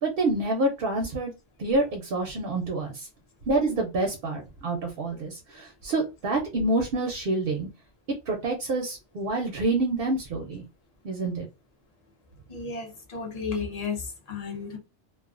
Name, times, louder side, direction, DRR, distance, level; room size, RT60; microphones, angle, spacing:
voice 1, 0.0-1.3 1.6-3.1 3.5-7.7 8.3-10.6 11.0-11.5, right 2 dB, 60° right, 0.7 m, -27 dB
voice 2, 12.5-14.8, left 5 dB, 40° left, 0.7 m, -33 dB
2.4 x 2.3 x 2.4 m
omnidirectional pair, 1.3 m